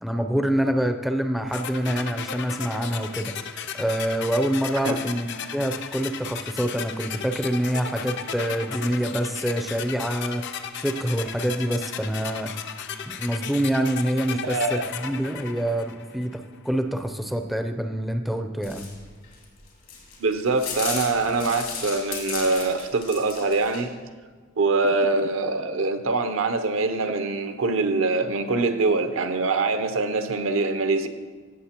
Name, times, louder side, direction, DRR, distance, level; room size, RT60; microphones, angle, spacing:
voice 1, 0.0-3.4 3.7-10.4 10.8-12.5 13.2-18.9, right 1 dB, ahead, 0.4 m, -26 dB
sound 1, 1.5-16.4, left 7 dB, 55° left, 0.5 m, -35 dB
voice 2, 14.4-14.8 20.2-23.9 24.6-31.1, right 3 dB, 70° right, 0.7 m, -24 dB
sound 2, 18.6-23.8, left 6 dB, 80° left, 2.6 m, -35 dB
16.0 x 7.4 x 2.9 m
head